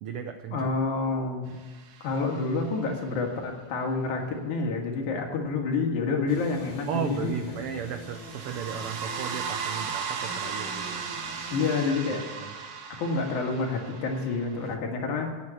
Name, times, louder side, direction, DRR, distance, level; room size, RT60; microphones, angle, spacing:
voice 1, 0.0-0.7 6.9-11.1 12.1-12.5 14.7-14.8, right 7 dB, 90° right, 7 dB, 1.2 m, -35 dB
voice 2, 0.5-1.6 2.0-7.4 11.5-12.2 13.0-15.3, left 4 dB, 80° left, 1 dB, 3.2 m, -28 dB
sound 1, 1.7-2.7 8.0-14.7, right 6 dB, 70° right, 2.2 m, -36 dB
sound 2, 6.3-11.9, right 1 dB, 5° right, 2.0 m, -44 dB
9.7 x 9.1 x 8.6 m, 1.3 s
omnidirectional pair, 3.4 m